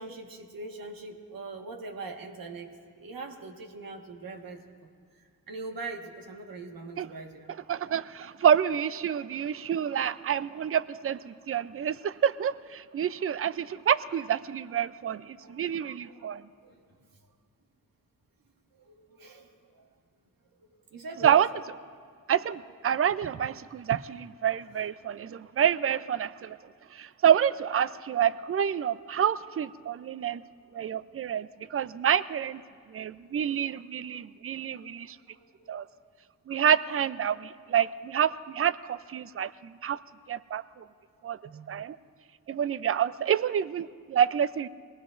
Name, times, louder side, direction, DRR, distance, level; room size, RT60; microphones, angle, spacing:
voice 1, 0.0-2.7 2.9-4.9 5.5-7.5 15.4-15.6 16.0-16.8 18.8-19.9 20.6-21.4 24.7-24.8 25.4-25.5 29.9-30.4 30.9-31.0 34.6-34.9 35.3-35.7 44.1-44.2, right 3 dB, 70° right, 2 dB, 1.6 m, -42 dB
voice 2, 7.7-16.4 21.2-21.5 22.3-26.6 26.9-30.4 30.7-32.6 32.9-35.2 35.7-35.8 36.5-40.0 40.3-40.8 41.2-42.0 42.5-44.7, right 9 dB, 40° right, 17 dB, 0.5 m, -28 dB
21.5 x 18.5 x 2.6 m, 2.2 s
supercardioid pair, 50°, 36 cm